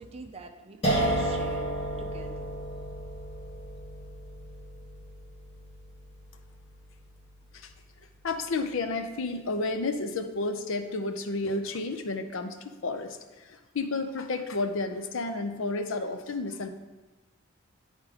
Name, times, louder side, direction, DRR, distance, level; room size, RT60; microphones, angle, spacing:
voice 1, 0.0-1.6 2.0-2.5, right 3 dB, 25° right, 5 dB, 0.5 m, -44 dB
sound 1, 0.8-7.8, right 1 dB, 25° left, 1.2 m, -33 dB
voice 2, 8.2-16.7, left 3 dB, 60° left, 8 dB, 0.5 m, -31 dB
9.5 x 3.7 x 4.9 m, 1.1 s
head